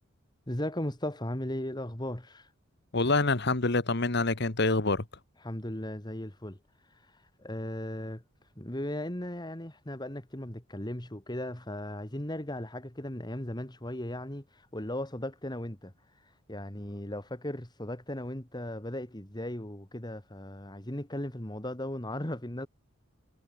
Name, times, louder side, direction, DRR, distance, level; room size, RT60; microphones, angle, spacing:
voice 1, 0.5-2.5 5.4-6.6 7.4-8.2 8.6-14.4 14.7-15.9 16.5-22.7, left 1 dB, 20° left, 2.2 m, -37 dB
voice 2, 2.9-5.1, left 3 dB, 55° left, 1.6 m, -26 dB
head